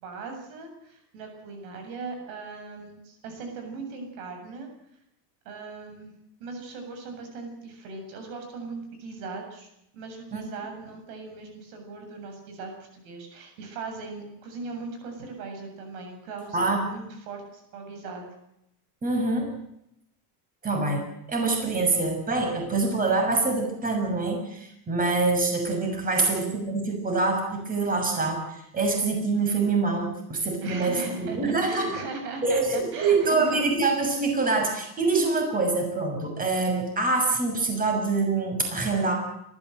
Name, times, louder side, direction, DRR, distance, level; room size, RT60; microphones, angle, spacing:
voice 1, 0.0-4.7 5.4-6.1 6.4-18.3 26.1-26.6 30.6-33.6, right 4 dB, 90° right, 4 dB, 7.6 m, -39 dB
voice 2, 19.0-19.5 20.6-31.9 32.4-39.1, right 3 dB, 20° right, 3 dB, 6.5 m, -25 dB
29.0 x 14.0 x 7.9 m, 0.80 s
cardioid pair, 150°, 41 cm